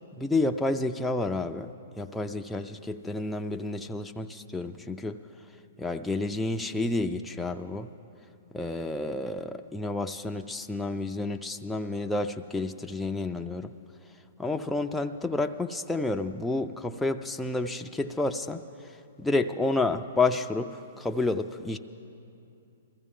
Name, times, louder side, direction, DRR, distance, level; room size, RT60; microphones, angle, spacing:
voice 1, 0.2-1.7 2.0-5.2 5.8-7.9 8.5-13.7 14.4-18.6 19.2-21.8, left 2 dB, 5° left, 3 dB, 0.3 m, -30 dB
22.0 x 14.5 x 3.7 m, 2.6 s
hypercardioid pair, 145°, 0 cm